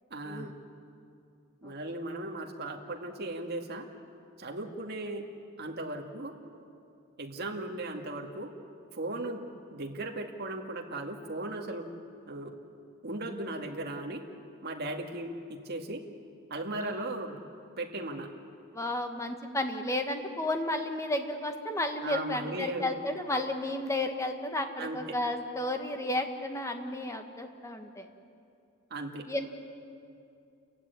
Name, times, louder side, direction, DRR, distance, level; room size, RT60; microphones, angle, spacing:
voice 1, 0.1-0.5 1.6-3.9 4.4-5.3 5.6-6.3 7.2-8.5 8.9-11.9 12.3-12.5 13.0-14.2 14.6-16.0 16.5-17.4 17.8-18.3 22.0-22.9 24.8-25.2 28.9-29.2, right 2 dB, 50° right, 2 dB, 2.2 m, -37 dB
voice 2, 18.7-28.0 29.3-29.5, left 1 dB, 15° left, 5 dB, 1.6 m, -32 dB
29.5 x 15.5 x 9.8 m, 2.5 s
head